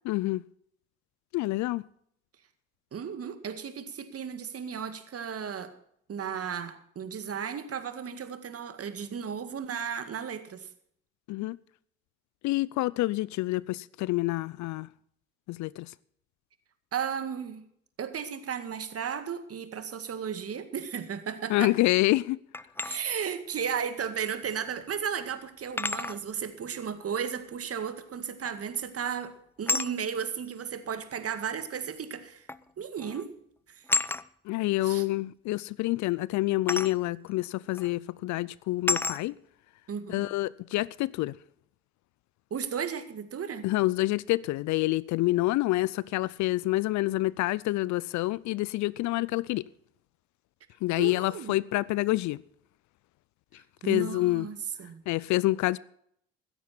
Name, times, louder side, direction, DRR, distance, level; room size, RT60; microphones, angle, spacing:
voice 1, 0.1-0.4 1.3-1.8 11.3-11.6 12.4-14.9 15.5-15.9 21.5-22.4 34.5-39.3 40.1-41.3 43.6-49.6 50.8-52.4 53.8-54.4 55.1-55.8, left 18 dB, 55° left, 0.5 m, -27 dB
voice 2, 2.9-5.7 6.1-10.7 16.9-17.6 18.0-21.8 22.8-32.5 32.8-33.3 33.7-33.8 34.8-35.1 39.9-40.3 42.5-43.7 51.0-51.6 53.8-55.0, right 7 dB, 40° right, 2.0 m, -34 dB
sound 1, 22.5-23.0 24.5-24.6 25.8-26.2 28.4-28.8 29.7-29.9 31.1-31.2 32.5-32.7 33.0-33.2 33.9-34.2 36.7-36.9 37.7-37.9 38.9-39.2, left 2 dB, 5° left, 0.6 m, -30 dB
16.0 x 13.5 x 4.3 m
hypercardioid pair, 55°, 35 cm